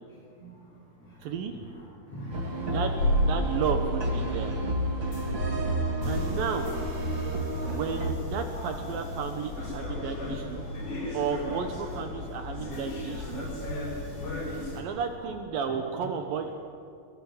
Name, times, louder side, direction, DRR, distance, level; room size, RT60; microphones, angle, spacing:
voice 1, 0.4-0.7 1.7-1.8 2.1-2.8 7.5-7.8 8.5-8.7 10.7-10.8 12.7-12.8 13.6-13.9 14.4-14.9 15.7-15.8, right 1 dB, 50° left, -6 dB, 6.9 m, -43 dB
voice 2, 1.2-1.6 2.6-2.9 3.2-4.6 6.1-6.7 7.6-10.7 11.1-13.5 14.8-16.6, right 6 dB, 70° right, 6 dB, 2.9 m, -33 dB
sound 1, 2.3-8.1, right 1 dB, 35° right, 2.5 m, -30 dB
sound 2, 3.0-14.8, left 1 dB, 75° left, 7.6 m, -34 dB
24.0 x 21.5 x 8.0 m, 2.3 s
omnidirectional pair, 4.3 m